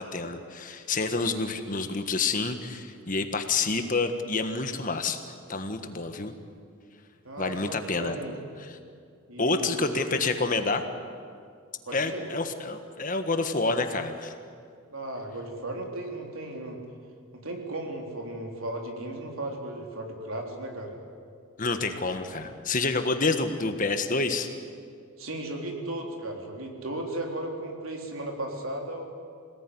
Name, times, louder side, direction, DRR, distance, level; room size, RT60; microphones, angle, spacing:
voice 1, 0.0-5.2 5.5-6.3 7.4-8.1 9.4-10.8 11.9-14.3 21.6-24.5, left 3 dB, 40° left, 7 dB, 1.5 m, -28 dB
voice 2, 7.2-8.3 9.3-10.2 11.9-12.3 14.9-16.8 17.3-20.9 25.2-29.0, right 1 dB, 75° right, 2 dB, 3.8 m, -36 dB
26.5 x 18.5 x 9.9 m, 2.3 s
head